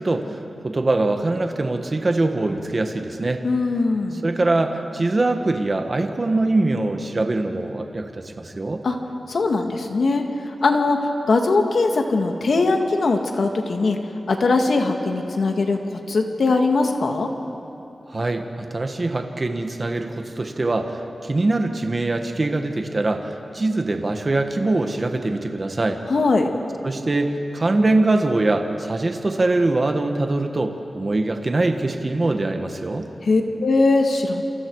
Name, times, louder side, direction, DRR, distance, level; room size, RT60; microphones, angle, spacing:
voice 1, 0.0-3.4 4.2-8.8 18.1-26.0 26.8-33.1, right 2 dB, 35° right, 5 dB, 1.5 m, -23 dB
voice 2, 3.4-4.2 8.8-9.0 9.3-10.3 10.6-14.0 14.3-15.8 16.1-17.3 26.1-26.5 33.2-34.4, left 3 dB, 70° left, 4 dB, 2.0 m, -20 dB
28.0 x 28.0 x 4.8 m, 2.9 s
wide cardioid pair, 130°, 0 cm